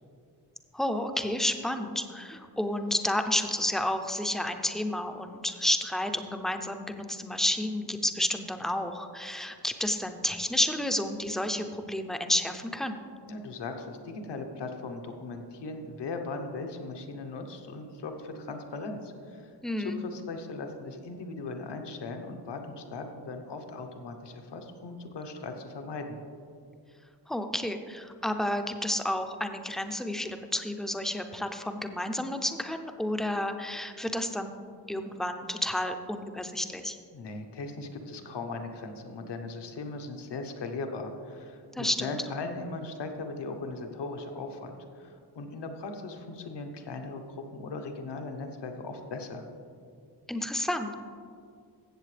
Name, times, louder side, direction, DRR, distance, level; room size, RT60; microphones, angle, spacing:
voice 1, 0.7-13.0 19.6-20.0 27.3-34.5 34.9-37.0 41.7-42.2 50.3-50.9, left 1 dB, ahead, 6 dB, 0.4 m, -31 dB
voice 2, 13.3-26.2 37.1-49.5, left 3 dB, 80° left, 5 dB, 1.0 m, -38 dB
15.0 x 7.5 x 3.3 m, 2.4 s
wide cardioid pair, 160°, 41 cm